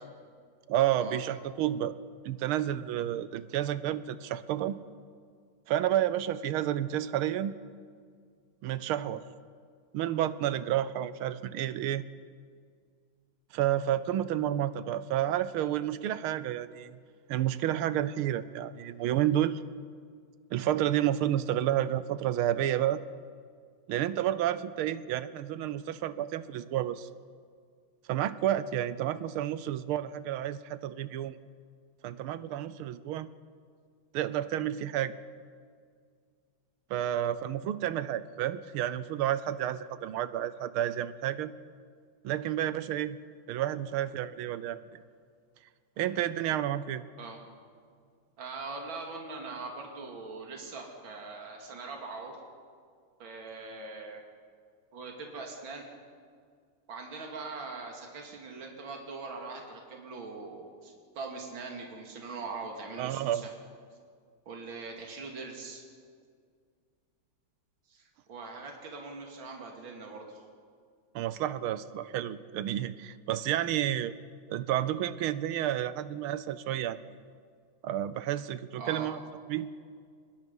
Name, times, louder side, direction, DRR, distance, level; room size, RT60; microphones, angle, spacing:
voice 1, 0.7-2.0 2.2-4.8 5.7-7.5 8.6-9.2 9.9-12.0 13.5-17.0 17.3-19.6 20.5-23.0 23.9-27.1 28.1-31.4 32.0-33.3 34.1-35.2 36.9-41.5 42.2-43.2 43.5-45.0 46.0-47.0 63.0-63.5 71.1-74.1 74.5-77.0 77.8-79.2 79.5-79.7, right 11 dB, 80° right, 15 dB, 1.6 m, -30 dB
voice 2, 48.4-52.4 53.2-54.2 54.9-55.8 56.9-63.5 64.5-65.8 67.9-70.4 78.8-79.1, right 3 dB, 65° right, 1 dB, 3.1 m, -41 dB
24.0 x 20.5 x 5.4 m, 2.1 s
omnidirectional pair, 2.4 m